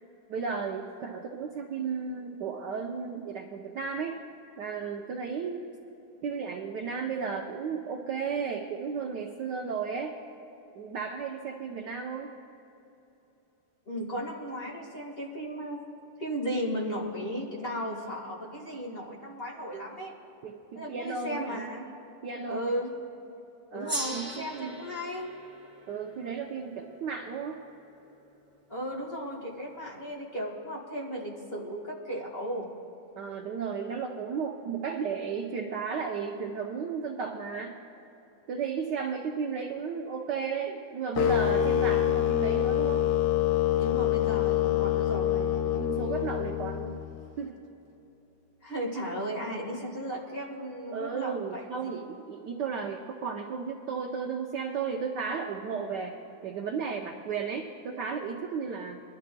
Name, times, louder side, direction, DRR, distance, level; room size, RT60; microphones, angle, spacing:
voice 1, 0.3-4.2 4.6-5.6 6.2-10.2 10.7-12.3 20.4-21.7 22.2-22.6 23.7-24.8 25.9-27.6 33.2-37.8 38.5-43.1 45.8-47.0 47.4-47.6 50.9-56.2 56.4-59.0, right 6 dB, 70° right, 1 dB, 1.1 m, -34 dB
voice 2, 13.9-15.8 16.2-20.1 20.7-21.9 22.4-22.9 23.7-25.3 28.7-32.7 43.8-45.5 48.6-52.0, equal, 30° left, -3 dB, 1.6 m, -35 dB
Gong, 23.9-28.6, right 1 dB, 5° right, 1.1 m, -40 dB
sound 1, 41.2-47.2, left 11 dB, 70° left, 1.2 m, -26 dB
22.0 x 12.0 x 2.2 m, 3.0 s
omnidirectional pair, 2.3 m